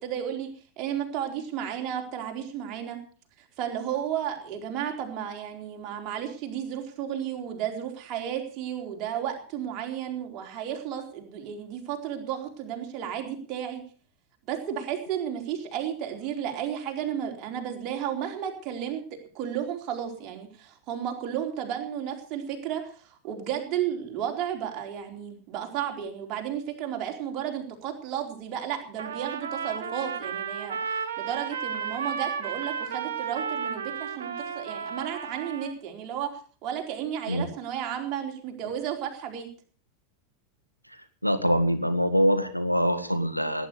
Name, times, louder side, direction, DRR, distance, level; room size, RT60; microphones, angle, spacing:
voice 1, 0.0-0.5 0.8-3.0 3.6-13.8 14.5-19.0 19.3-39.5, right 9 dB, 40° right, 2 dB, 4.1 m, -33 dB
Trumpet, 29.0-35.7, right 6 dB, 60° right, 2.1 m, -33 dB
voice 2, 41.2-43.7, equal, 90° right, 10 dB, 1.4 m, -24 dB
18.5 x 10.0 x 6.9 m, 0.43 s
figure-of-eight pair, 90°, 0 cm